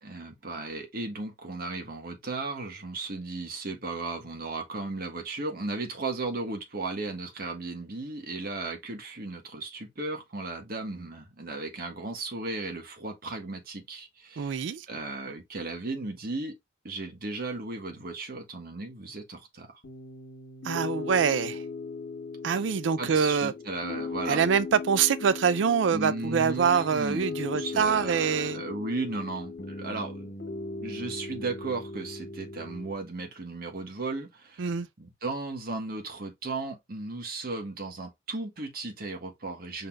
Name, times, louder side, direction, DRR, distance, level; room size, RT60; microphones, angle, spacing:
voice 1, 0.0-14.6 14.9-16.6 16.8-19.7 23.0-24.5 25.9-30.3 30.8-34.7 35.0-39.9, right 3 dB, 55° right, 1.5 m, -35 dB
voice 2, 14.4-14.9 20.6-21.6 22.4-23.5 24.3-28.6 34.6-34.9, right 6 dB, 80° right, 0.4 m, -25 dB
Piano, 19.8-32.9, left 4 dB, 90° left, 1.6 m, -38 dB
5.3 x 4.0 x 2.4 m
head